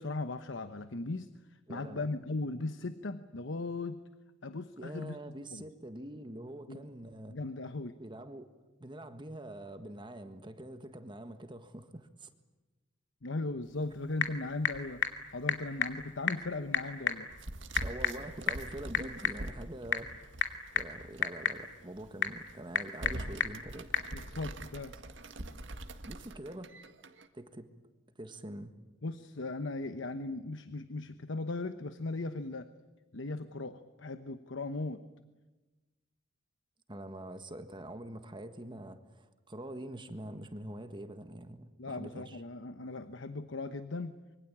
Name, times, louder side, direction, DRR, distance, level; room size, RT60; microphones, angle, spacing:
voice 1, 0.0-4.0 4.4-5.6 6.7-6.9 7.3-8.0 13.2-17.3 24.1-25.0 25.4-25.6 29.0-32.7 33.1-35.0 41.8-44.2, left 2 dB, 90° left, 10 dB, 1.0 m, -38 dB
voice 2, 1.7-2.0 4.8-7.4 8.0-8.5 8.8-12.3 17.8-20.3 20.7-23.9 26.0-26.7 27.3-27.7 28.2-28.7 36.9-42.4, right 1 dB, 25° right, 8 dB, 1.6 m, -45 dB
Typing / Telephone, 13.6-24.1, left 6 dB, 75° left, 2.6 m, -36 dB
sound 1, 17.3-21.2 21.6-21.7 22.2-22.5 22.9-27.3, right 1 dB, 80° right, 1.9 m, -44 dB
25.5 x 24.0 x 8.7 m, 1.1 s
head